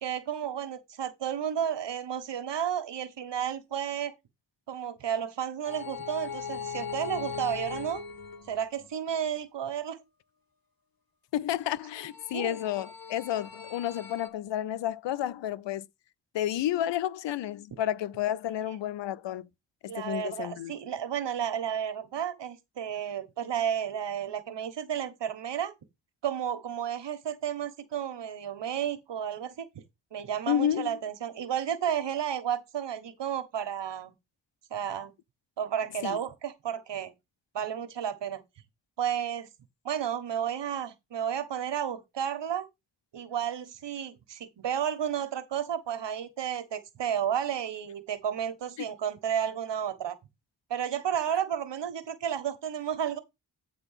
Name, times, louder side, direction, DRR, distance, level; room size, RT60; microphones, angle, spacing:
voice 1, 0.0-4.1 4.7-8.0 8.5-10.0 12.3-12.6 19.9-25.7 26.2-29.7 30.1-34.1 34.7-35.1 35.6-37.1 37.5-38.4 39.0-39.5 39.8-42.7 43.1-50.1 50.7-53.2, right 9 dB, 80° right, 1.3 m, -32 dB
sound 1, 5.6-8.9 11.7-14.3, left 6 dB, 55° left, 1.5 m, -39 dB
voice 2, 11.3-15.9 16.3-19.5 19.8-20.7 30.5-31.0 36.0-36.2, left 11 dB, 90° left, 0.6 m, -31 dB
8.8 x 4.1 x 5.7 m
cardioid pair, 45°, 42 cm